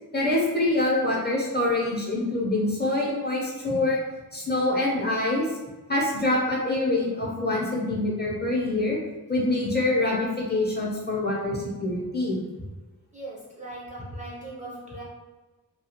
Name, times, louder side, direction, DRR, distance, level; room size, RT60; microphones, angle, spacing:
voice 1, 0.1-4.0 4.3-5.4 5.9-9.0 9.3-12.4, left 2 dB, 25° left, -4 dB, 0.7 m, -25 dB
voice 2, 13.1-15.0, right 2 dB, 20° right, -6 dB, 0.5 m, -39 dB
2.4 x 2.3 x 2.8 m, 1.2 s
wide cardioid pair, 75°, 38 cm